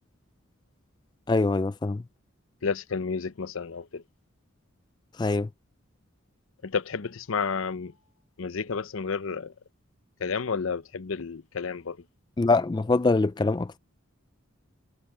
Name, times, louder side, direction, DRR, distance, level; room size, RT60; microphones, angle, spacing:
voice 1, 1.3-2.0 5.2-5.5 12.4-13.7, left 3 dB, 20° left, 0.3 m, -23 dB
voice 2, 2.6-4.0 6.6-7.9 8.4-9.5 10.2-12.0, left 5 dB, 75° left, 0.7 m, -31 dB
head